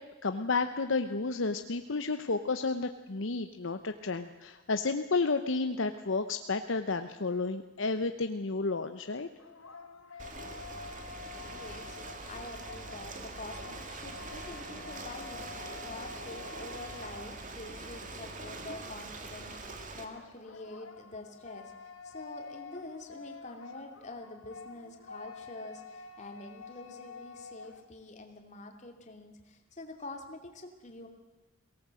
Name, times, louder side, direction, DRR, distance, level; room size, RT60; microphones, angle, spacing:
voice 1, 0.2-9.3, left 3 dB, 65° left, 8 dB, 0.8 m, -31 dB
sound 1, 9.4-17.8 20.1-27.9, left 4 dB, 90° left, 1.6 m, -48 dB
Ocean, 10.2-20.0, right 3 dB, 40° right, 2.2 m, -43 dB
voice 2, 11.4-12.0 12.3-21.7 22.0-31.1, left 2 dB, 35° left, 4 dB, 2.7 m, -46 dB
22.5 x 18.0 x 7.7 m, 1.2 s
head